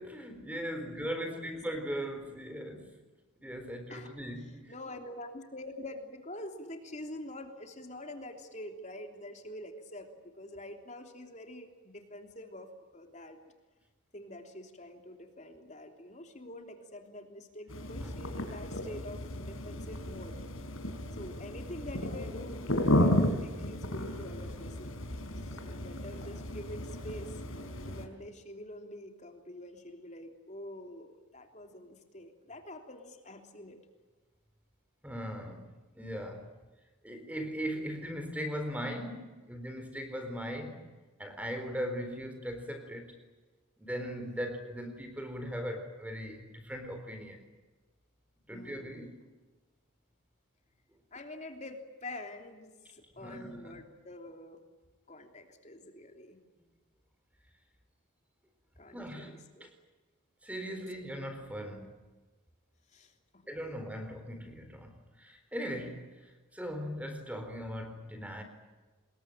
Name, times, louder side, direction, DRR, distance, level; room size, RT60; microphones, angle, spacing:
voice 1, 0.0-3.0 3.4-4.7 18.0-18.1 35.0-36.5 37.0-40.9 41.2-43.2 43.8-47.4 48.5-49.2 53.2-53.8 58.9-59.7 60.4-62.0 63.5-68.4, equal, 5° right, 7 dB, 4.1 m, -39 dB
voice 2, 0.5-1.5 3.9-4.1 4.4-13.4 14.1-20.4 21.2-25.0 25.4-27.4 27.7-33.8 48.5-49.1 51.1-54.6 55.1-56.4 58.8-59.7 62.9-63.8, left 1 dB, 35° left, 5 dB, 3.2 m, -46 dB
sound 1, 17.7-28.1, left 1 dB, 75° left, 4.2 m, -33 dB
26.0 x 22.0 x 9.0 m, 1.3 s
head